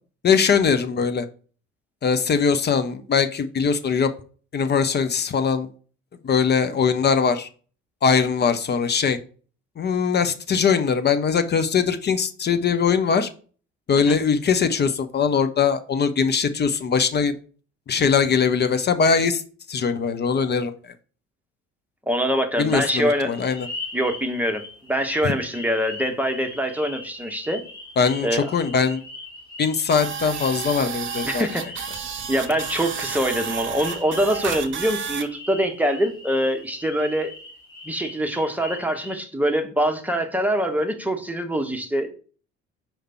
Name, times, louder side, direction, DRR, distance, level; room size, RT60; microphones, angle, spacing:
voice 1, 0.2-1.3 2.0-4.1 4.5-5.7 6.2-7.5 8.0-9.2 9.8-13.3 13.9-17.3 17.9-19.4 19.7-20.9 22.6-23.7 25.2-25.3 28.0-29.0 29.6-31.5, left 6 dB, 25° left, 9 dB, 0.6 m, -21 dB
voice 2, 22.1-23.3 23.9-24.6 24.9-27.6 28.2-28.5 31.2-31.9 32.3-37.3 37.8-42.1, equal, 5° right, 5 dB, 1.0 m, -24 dB
sound 1, 22.7-39.1, left 2 dB, 60° left, 1.9 m, -40 dB
sound 2, 29.9-35.2, right 7 dB, 30° right, 0.8 m, -31 dB
5.0 x 4.4 x 4.3 m, 0.40 s
figure-of-eight pair, 50°, 38 cm